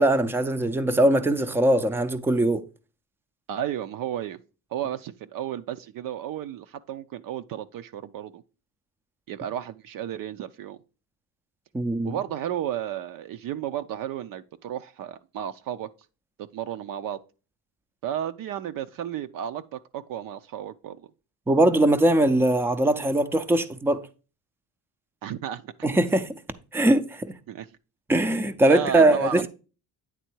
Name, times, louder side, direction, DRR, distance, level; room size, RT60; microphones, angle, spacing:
voice 1, 0.0-2.6 11.7-12.1 21.5-24.0 25.8-26.4 26.7-27.3 28.1-29.5, right 1 dB, 5° right, 0.5 m, -21 dB
voice 2, 3.5-4.4 4.7-8.4 9.3-10.8 12.0-15.9 16.4-17.2 18.0-21.0 25.2-25.7 27.5-27.7 28.7-29.5, right 10 dB, 60° right, 0.6 m, -33 dB
9.3 x 3.7 x 4.5 m
cardioid pair, 130°, 38 cm